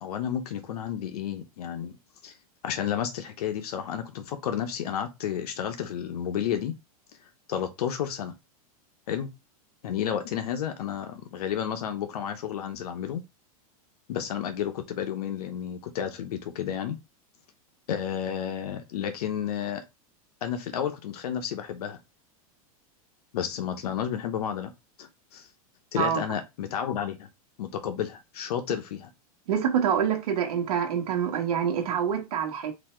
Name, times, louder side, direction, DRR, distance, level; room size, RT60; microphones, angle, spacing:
voice 1, 0.0-2.0 2.2-2.3 2.6-6.7 7.5-8.3 9.1-9.3 9.8-13.2 14.1-17.0 17.9-19.8 20.4-22.0 23.3-24.7 25.0-25.5 25.9-27.3 27.6-29.1, left 9 dB, 85° left, 0.8 m, -31 dB
voice 2, 29.5-32.7, right 8 dB, 80° right, 1.3 m, -26 dB
4.1 x 2.8 x 4.3 m
supercardioid pair, 155°, 19 cm